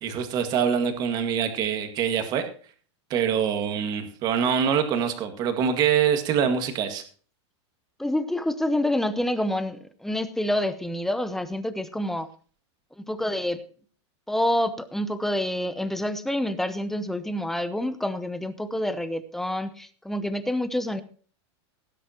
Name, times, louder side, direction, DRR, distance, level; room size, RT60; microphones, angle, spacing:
voice 1, 0.0-2.4 3.1-7.0, right 8 dB, 25° right, 7 dB, 2.0 m, -24 dB
voice 2, 8.0-12.3 13.0-13.6 14.3-21.0, left 1 dB, ahead, 12 dB, 0.7 m, -27 dB
18.0 x 10.0 x 2.9 m, 0.42 s
supercardioid pair, 170°, 15 cm